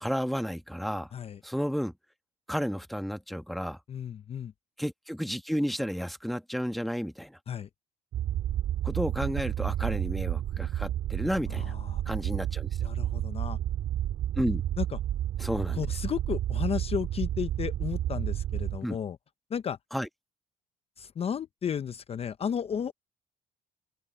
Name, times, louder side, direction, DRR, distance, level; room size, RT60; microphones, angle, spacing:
voice 1, 0.0-1.1 1.4-1.9 2.5-3.8 4.8-7.4 8.8-11.7 12.1-12.7 14.4-14.6 15.4-15.8 18.8-19.0 19.9-20.1, equal, ahead, 1.3 m, -32 dB
voice 2, 3.9-4.5 7.5-7.7 11.5-12.0 12.8-13.6 14.8-15.0 15.7-19.2 19.5-19.8 21.0-22.9, left 8 dB, 35° left, 0.6 m, -33 dB
sound 1, 8.1-18.8, right 12 dB, 65° right, 3.5 m, -31 dB
open air
cardioid pair, 110°, 17 cm